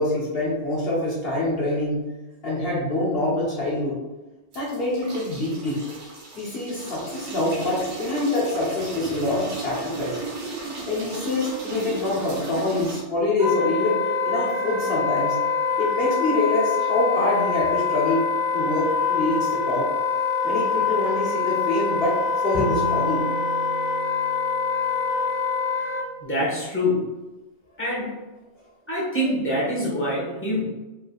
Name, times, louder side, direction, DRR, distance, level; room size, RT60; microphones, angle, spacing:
voice 1, 0.0-2.0 2.4-4.0 4.5-5.8 6.4-10.2 10.9-15.4 15.8-18.2 18.5-19.9 20.4-23.3, left 2 dB, 60° left, -6 dB, 1.2 m, -25 dB
sound 1, 4.5-13.0, right 3 dB, 70° right, 1.1 m, -35 dB
Wind instrument woodwind instrument, 13.4-26.1, left 5 dB, 30° right, 1.0 m, -25 dB
Bowed string instrument, 22.5-25.7, right 2 dB, 40° left, 1.4 m, -33 dB
voice 2, 26.2-27.1 27.8-28.1 28.9-30.6, left 1 dB, 10° left, -7 dB, 1.3 m, -25 dB
4.4 x 3.5 x 2.3 m, 1.1 s
omnidirectional pair, 1.2 m